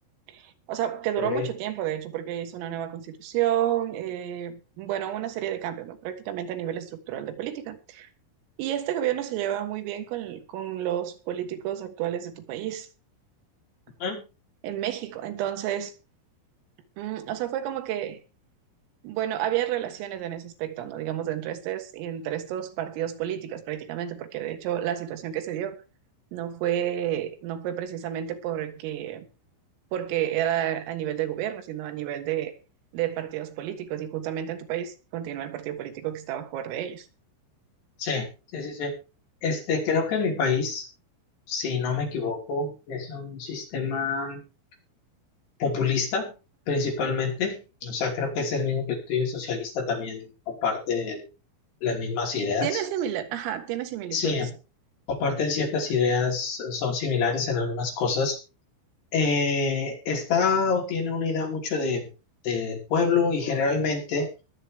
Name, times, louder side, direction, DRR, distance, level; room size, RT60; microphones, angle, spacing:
voice 1, 0.3-8.1 8.6-12.9 14.6-15.9 17.0-18.2 19.0-25.8 26.3-29.3 29.9-32.5 32.9-37.1 52.4-54.4, right 11 dB, 90° right, 4.3 m, -30 dB
voice 2, 38.5-38.9 39.4-40.9 41.5-44.4 45.6-46.3 46.7-50.3 50.6-51.3 51.8-52.8 54.1-54.5 55.1-58.4 59.1-62.1 62.4-64.3, left 5 dB, 55° left, 6.9 m, -26 dB
22.0 x 8.2 x 3.6 m
omnidirectional pair, 5.8 m